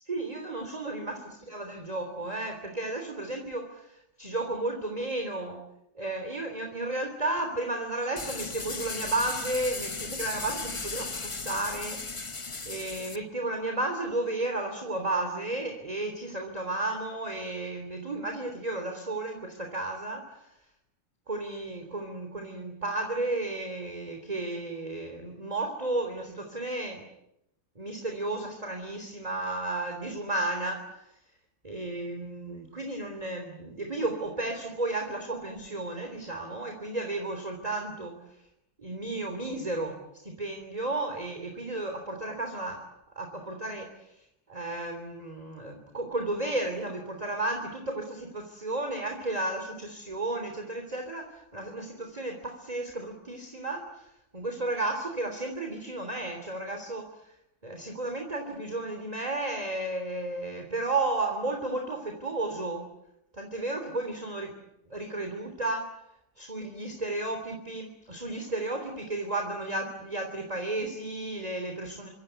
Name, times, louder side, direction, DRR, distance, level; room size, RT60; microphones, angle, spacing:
voice 1, 0.1-5.6 5.9-12.0 12.6-20.5 21.3-27.1 27.7-31.1 31.6-38.4 38.8-42.9 43.1-44.2 44.5-57.3 57.6-62.9 63.3-64.5 64.9-65.9 66.4-72.1, right 2 dB, 15° right, 4 dB, 3.4 m, -33 dB
sound 1, 8.2-13.2, left 3 dB, 35° left, 0.5 m, -36 dB
28.0 x 25.0 x 8.2 m, 0.83 s
omnidirectional pair, 2.3 m